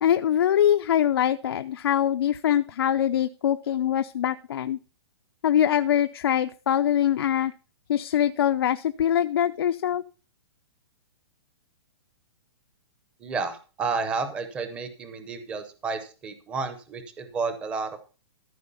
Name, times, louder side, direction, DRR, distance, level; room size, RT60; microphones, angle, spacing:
voice 1, 0.0-4.8 5.4-7.5 7.9-10.0, left 10 dB, 65° left, 9 dB, 0.5 m, -23 dB
voice 2, 13.2-18.0, right 4 dB, 10° right, 9 dB, 0.6 m, -31 dB
14.0 x 5.1 x 5.4 m, 0.35 s
hypercardioid pair, 175°, 14 cm